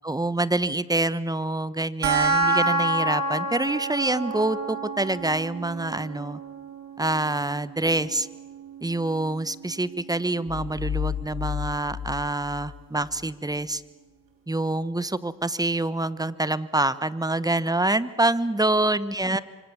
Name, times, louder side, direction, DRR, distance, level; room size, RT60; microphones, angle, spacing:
voice 1, 0.0-6.4 7.0-8.3 8.8-13.8 14.5-19.4, right 2 dB, 10° right, 16 dB, 1.2 m, -26 dB
sound 1, 2.0-13.0, right 2 dB, 70° right, 5.8 m, -30 dB
sound 2, 10.5-13.3, left 9 dB, 35° left, 0.9 m, -32 dB
26.0 x 25.0 x 7.3 m, 1.3 s
supercardioid pair, 60°, 35 cm